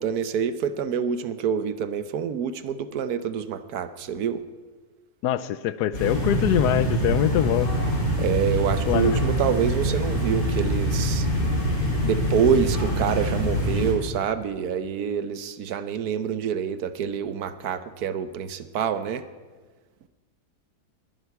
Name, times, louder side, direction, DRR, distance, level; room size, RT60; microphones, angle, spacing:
voice 1, 0.0-4.4 8.2-11.3 12.0-19.2, right 7 dB, 70° right, 12 dB, 1.3 m, -26 dB
voice 2, 5.2-7.7 8.9-9.2, left 12 dB, 80° left, 16 dB, 1.2 m, -23 dB
sound 1, 5.9-13.9, equal, 40° left, 3.8 m, -25 dB
21.0 x 11.5 x 4.7 m, 1.3 s
omnidirectional pair, 1.7 m